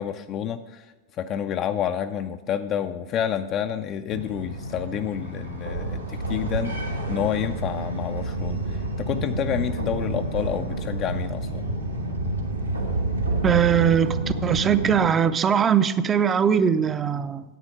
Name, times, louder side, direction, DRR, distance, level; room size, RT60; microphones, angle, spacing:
voice 1, 0.0-11.6, left 9 dB, 35° left, 7 dB, 0.4 m, -29 dB
sound 1, 4.1-15.1, right 2 dB, 85° right, 1.4 m, -29 dB
voice 2, 13.4-17.4, right 8 dB, 20° right, 14 dB, 0.5 m, -21 dB
10.0 x 8.8 x 5.1 m, 1.1 s
figure-of-eight pair, 90°, 0 cm